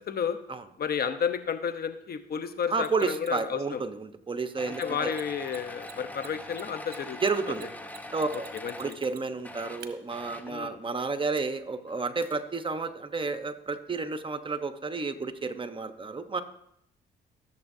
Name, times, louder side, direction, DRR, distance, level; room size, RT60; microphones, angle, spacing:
voice 1, 0.1-0.4 0.8-3.8 4.7-7.2 8.3-8.9 10.5-10.8, left 7 dB, 50° left, 9 dB, 1.0 m, -32 dB
voice 2, 2.7-5.1 7.2-7.7 8.1-8.5 8.8-16.4, right 4 dB, 25° right, 9 dB, 1.0 m, -31 dB
Mechanisms, 2.8-3.5 4.7-4.8 5.1-5.2 5.5-5.6 5.8-9.4 9.8-9.9 11.4-11.5, right 9 dB, 55° right, 1.1 m, -48 dB
sound 1, 4.6-9.1 9.4-10.6 11.9-12.0 12.2-12.4, left 1 dB, 10° left, 1.0 m, -43 dB
16.0 x 7.0 x 2.8 m, 0.77 s
supercardioid pair, 65°, 20 cm